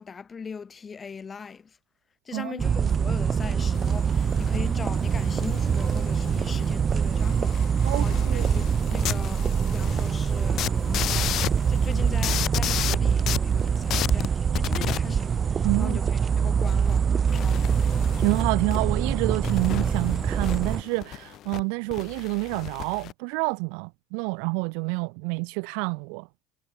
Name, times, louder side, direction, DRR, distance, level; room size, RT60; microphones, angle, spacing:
voice 1, 0.0-1.8 2.3-17.9, left 5 dB, 30° left, 7.2 m, -40 dB
sound 1, 2.6-20.8, right 7 dB, 35° right, 0.5 m, -24 dB
sound 2, 3.7-15.0 15.9-16.0 16.7-17.0 17.3-18.4 18.7-18.8 19.4-21.6 21.9-23.1, left 13 dB, 55° left, 1.5 m, -34 dB
voice 2, 7.8-8.5 15.6-16.0 18.2-26.3, right 40 dB or more, 70° right, 1.5 m, -28 dB
hypercardioid pair, 85°, 0 cm